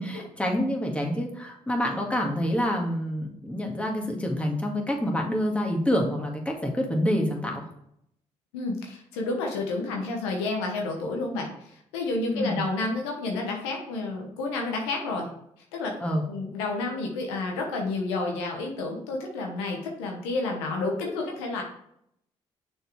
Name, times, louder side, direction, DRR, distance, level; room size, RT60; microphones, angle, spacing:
voice 1, 0.0-7.7 12.3-12.7 16.0-16.2, equal, 10° left, 0 dB, 1.9 m, -27 dB
voice 2, 8.5-15.3 15.7-16.0 16.3-21.6, left 3 dB, 90° left, 1 dB, 1.1 m, -30 dB
6.4 x 4.6 x 4.8 m, 0.74 s
hypercardioid pair, 50°, 14 cm